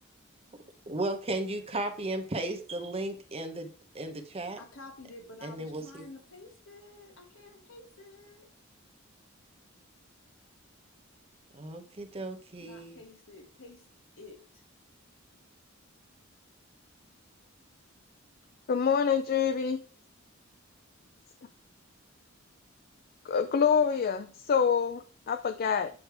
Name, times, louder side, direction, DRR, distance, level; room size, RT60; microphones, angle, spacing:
voice 1, 0.9-3.7 3.9-4.6 5.4-6.0 11.5-13.0, right 2 dB, 30° right, 7 dB, 0.8 m, -35 dB
voice 2, 4.6-8.5 12.6-13.8 14.2-14.6, left 2 dB, 70° left, 3 dB, 1.6 m, -50 dB
voice 3, 18.7-19.8 23.3-25.9, left 6 dB, 50° left, 10 dB, 0.4 m, -26 dB
8.5 x 3.2 x 4.6 m, 0.40 s
head